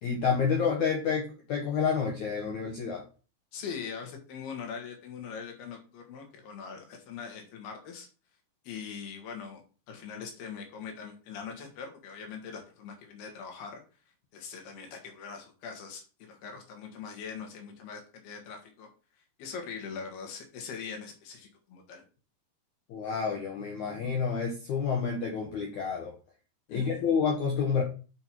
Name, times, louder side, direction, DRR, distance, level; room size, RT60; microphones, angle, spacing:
voice 1, 0.0-3.0 22.9-26.1 26.7-27.8, left 6 dB, 80° left, 0 dB, 1.7 m, -29 dB
voice 2, 3.5-8.1 8.6-9.6 9.9-13.8 14.3-18.9 19.4-22.0 26.7-27.0, left 6 dB, 65° left, 3 dB, 3.3 m, -42 dB
6.5 x 5.7 x 4.5 m, 0.36 s
omnidirectional pair, 5.2 m